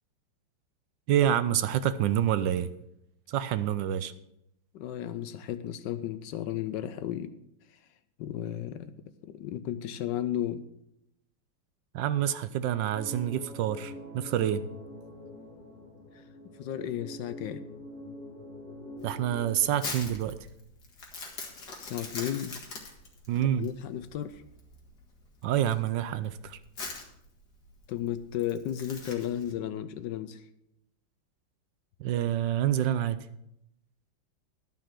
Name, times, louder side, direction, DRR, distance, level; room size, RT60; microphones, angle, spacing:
voice 1, 1.1-2.7 3.3-4.1 11.9-14.6 19.0-20.4 23.3-23.7 25.4-26.6 32.0-33.2, right 11 dB, 75° right, 13 dB, 1.2 m, -27 dB
voice 2, 4.7-7.3 8.2-8.9 9.2-10.7 16.4-17.6 21.8-22.5 23.6-24.4 27.9-30.4, left 11 dB, 70° left, 12 dB, 1.2 m, -34 dB
sound 1, 12.9-19.6, left 1 dB, 30° left, 3.6 m, -45 dB
Crumpling crinkling, 19.0-29.5, left 3 dB, 55° left, 2.3 m, -42 dB
12.0 x 5.6 x 7.5 m, 0.79 s
omnidirectional pair, 2.2 m